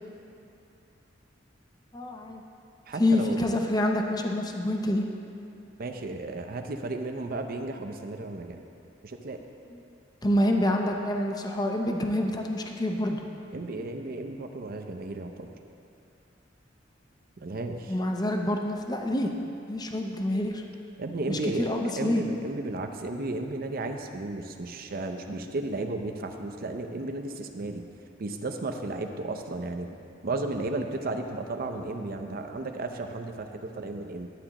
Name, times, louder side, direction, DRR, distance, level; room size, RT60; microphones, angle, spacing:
voice 1, 1.9-2.4 3.0-5.0 10.2-13.2 17.9-19.3 19.7-20.6 21.3-22.2, left 1 dB, 20° left, 2 dB, 0.6 m, -27 dB
voice 2, 2.9-3.4 5.8-8.6 9.0-9.4 13.5-15.5 17.4-18.0 21.0-27.9 28.2-30.0 30.2-34.3, right 2 dB, 50° right, 5 dB, 0.6 m, -34 dB
11.5 x 8.4 x 3.0 m, 2.6 s
head